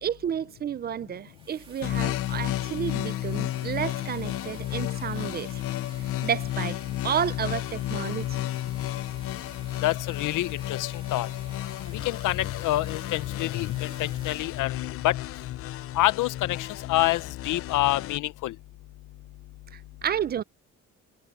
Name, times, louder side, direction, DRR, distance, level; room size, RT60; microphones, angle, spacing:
voice 1, 0.0-5.6 6.0-6.8 7.0-8.4 19.7-20.4, right 8 dB, 35° right, 0.4 m, -31 dB
sound 1, 1.1-15.9, right 3 dB, 15° right, 2.6 m, -52 dB
sound 2, 1.8-18.2, left 14 dB, 50° left, 0.4 m, -32 dB
voice 2, 9.8-11.3 11.9-15.2 15.9-18.6, left 16 dB, 90° left, 0.8 m, -27 dB
cardioid pair, 175°, 30 cm